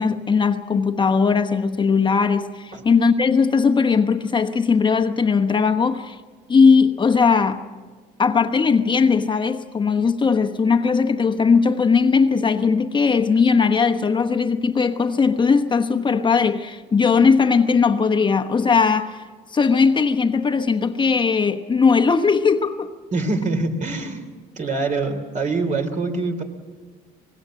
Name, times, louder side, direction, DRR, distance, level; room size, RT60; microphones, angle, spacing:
voice 1, 0.0-6.2 6.5-7.6 8.2-19.2 19.5-22.9, left 5 dB, 30° left, 1.0 m, -18 dB
voice 2, 23.1-24.2 24.6-26.4, right 3 dB, 45° right, 3.3 m, -24 dB
24.5 x 20.0 x 7.6 m
cardioid pair, 110°, 17 cm